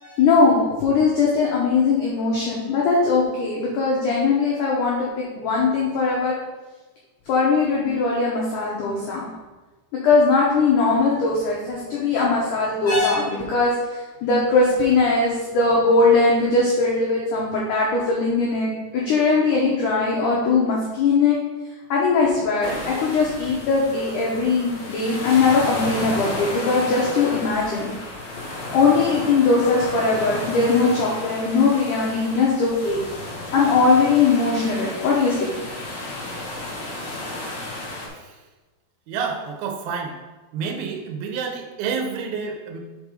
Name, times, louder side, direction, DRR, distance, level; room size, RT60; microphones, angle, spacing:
voice 1, 0.0-6.3 7.3-9.3 10.0-21.4 21.9-27.9 28.7-33.0 33.5-35.5, left 4 dB, 85° left, -4 dB, 1.8 m, -20 dB
sound 1, 22.6-38.1, left 2 dB, 60° left, 2.1 m, -33 dB
voice 2, 39.1-40.2 40.5-42.8, right 5 dB, 75° right, 3 dB, 2.4 m, -28 dB
5.4 x 5.3 x 4.8 m, 1.2 s
omnidirectional pair, 5.1 m